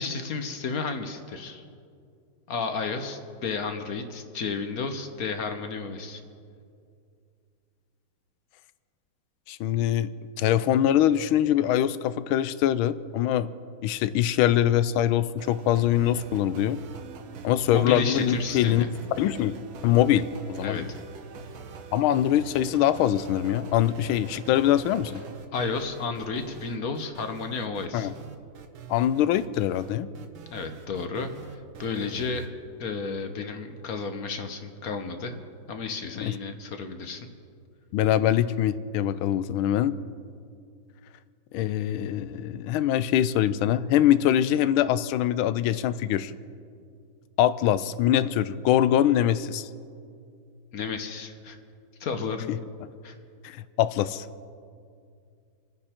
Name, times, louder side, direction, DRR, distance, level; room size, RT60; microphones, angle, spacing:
voice 1, 0.0-1.6 2.5-6.2 17.7-18.9 20.6-20.8 25.5-28.1 30.5-32.4 32.8-35.3 35.7-37.2 50.7-51.6 52.0-52.5 53.0-53.1, left 4 dB, 55° left, 7 dB, 1.3 m, -32 dB
voice 2, 9.5-10.1 10.4-13.5 13.8-16.8 17.4-18.9 19.2-20.3 20.6-20.9 21.9-25.2 27.9-28.1 28.9-30.1 36.2-36.3 37.9-39.9 41.5-46.3 47.4-49.7 52.5-52.6 53.4-54.2, left 11 dB, 85° left, 15 dB, 1.4 m, -23 dB
sound 1, 15.4-32.5, right 5 dB, 75° right, 1.8 m, -43 dB
28.5 x 9.9 x 4.4 m, 2.3 s
omnidirectional pair, 2.2 m